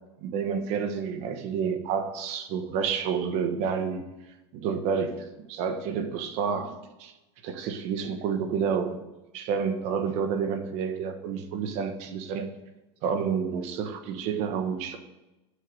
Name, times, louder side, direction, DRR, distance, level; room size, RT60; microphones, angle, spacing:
voice 1, 0.2-4.1 4.5-7.1 7.4-9.0 9.3-12.6 13.0-15.0, right 6 dB, 50° right, 8 dB, 1.1 m, -29 dB
6.6 x 6.5 x 6.5 m, 1.0 s
supercardioid pair, 130°, 14 cm